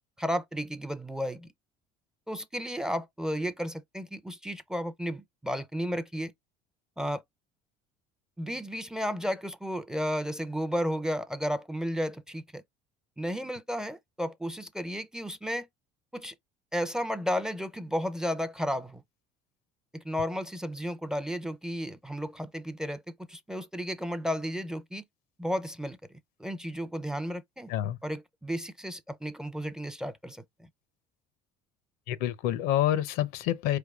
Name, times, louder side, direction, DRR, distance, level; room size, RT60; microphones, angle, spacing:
voice 1, 0.2-1.5 2.3-6.3 7.0-7.2 8.4-12.6 13.2-15.7 16.1-16.3 16.7-19.0 19.9-23.0 23.3-25.0 25.4-26.0 26.4-27.7 28.0-30.4, equal, 5° right, 0.4 m, -33 dB
voice 2, 32.1-33.8, left 12 dB, 75° left, 0.6 m, -27 dB
4.6 x 3.3 x 2.3 m
supercardioid pair, 105°, 16 cm